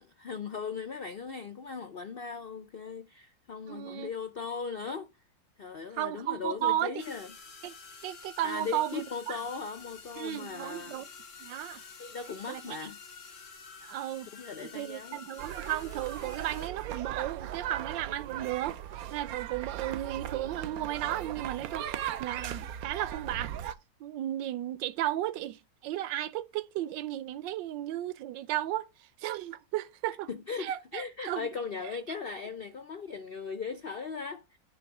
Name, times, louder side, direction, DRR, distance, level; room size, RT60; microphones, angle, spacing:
voice 1, 0.0-5.1 5.6-7.3 8.4-11.0 12.0-13.0 14.3-15.2 30.3-34.4, left 5 dB, 80° left, 0.5 m, -38 dB
voice 2, 3.7-4.1 5.9-7.0 7.6-7.7 8.0-9.4 10.2-11.0 11.4-11.8 12.5-12.8 13.8-14.3 14.6-18.8 19.1-23.5 24.0-28.9 29.2-30.3 30.6-31.5, right 13 dB, 80° right, 1.3 m, -34 dB
sound 1, 7.0-16.7, left 5 dB, 45° left, 1.6 m, -49 dB
sound 2, 15.4-23.7, right 11 dB, 65° right, 1.0 m, -38 dB
9.9 x 3.5 x 5.9 m
omnidirectional pair, 2.0 m